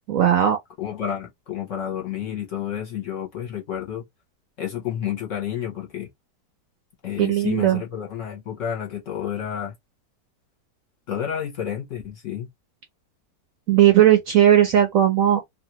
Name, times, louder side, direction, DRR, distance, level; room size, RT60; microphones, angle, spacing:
voice 1, 0.1-0.6 7.2-7.8 13.7-15.4, right 11 dB, 65° right, 0.8 m, -17 dB
voice 2, 0.8-4.0 4.6-6.1 7.0-9.7 11.1-12.5, left 9 dB, 55° left, 1.0 m, -30 dB
2.9 x 2.4 x 2.8 m
omnidirectional pair, 1.9 m